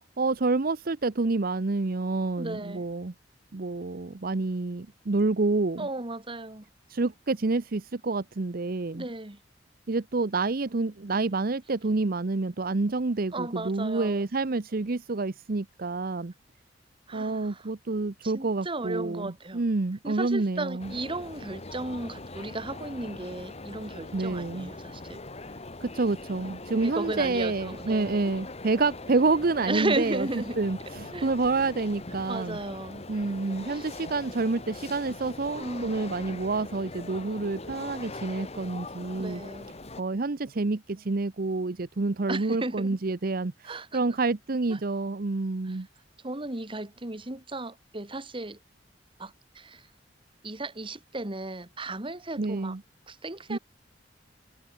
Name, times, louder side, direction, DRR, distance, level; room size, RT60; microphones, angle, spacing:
voice 1, 0.2-3.1 3.5-5.9 6.9-9.0 9.9-16.3 17.1-20.9 24.1-24.7 25.8-30.3 30.6-32.6 33.1-39.4 40.0-45.9 52.4-52.8 53.5-53.6, right 3 dB, 55° right, 0.8 m, -28 dB
voice 2, 2.4-2.9 5.8-6.7 8.9-9.4 13.3-14.2 17.1-17.7 18.2-19.6 20.0-25.2 26.8-28.3 29.6-30.6 31.1-31.3 32.3-33.1 33.7-33.9 35.6-36.0 39.2-39.7 42.3-43.0 43.6-44.0 44.7-44.8 45.7-45.8 46.2-48.6 49.2-49.8 50.4-52.8 53.1-53.6, right 2 dB, 30° right, 2.1 m, -35 dB
sound 1, 20.8-40.0, left 2 dB, 35° left, 1.9 m, -41 dB
head